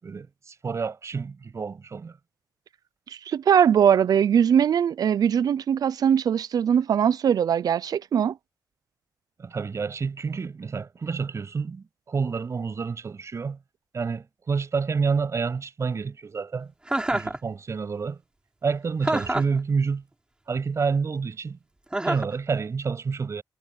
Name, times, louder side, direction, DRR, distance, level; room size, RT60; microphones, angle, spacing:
voice 1, 0.0-2.2 9.4-13.6 13.9-16.7 17.1-18.2 18.6-20.0 20.5-21.6 22.0-23.4, right 5 dB, 45° right, 7.1 m, -28 dB
voice 2, 3.3-8.3, right 8 dB, 65° right, 0.6 m, -21 dB
Chuckle chortle, 16.9-17.4 19.0-19.6 21.9-22.3, right 1 dB, 15° right, 4.2 m, -26 dB
cardioid pair, 105°, 7 cm